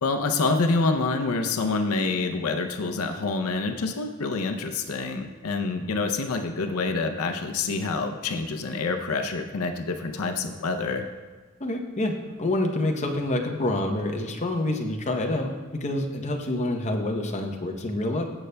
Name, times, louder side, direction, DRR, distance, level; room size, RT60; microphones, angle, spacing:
voice 1, 0.0-11.0, left 3 dB, 80° left, 6 dB, 0.6 m, -27 dB
voice 2, 11.6-18.2, left 1 dB, 35° left, 2 dB, 0.7 m, -27 dB
15.0 x 6.6 x 2.2 m, 1.4 s
head